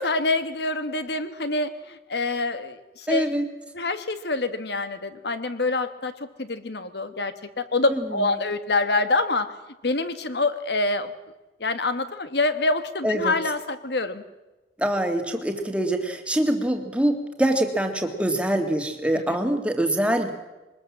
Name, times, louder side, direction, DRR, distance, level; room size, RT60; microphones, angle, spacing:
voice 1, 0.0-3.4 3.7-9.5 9.8-11.1 11.6-14.2 19.1-19.4, left 3 dB, 60° left, 11 dB, 1.5 m, -26 dB
voice 2, 3.1-3.5 7.9-8.0 13.0-13.3 14.8-20.3, right 1 dB, 5° right, 5 dB, 2.0 m, -24 dB
22.5 x 20.0 x 7.4 m, 1.1 s
head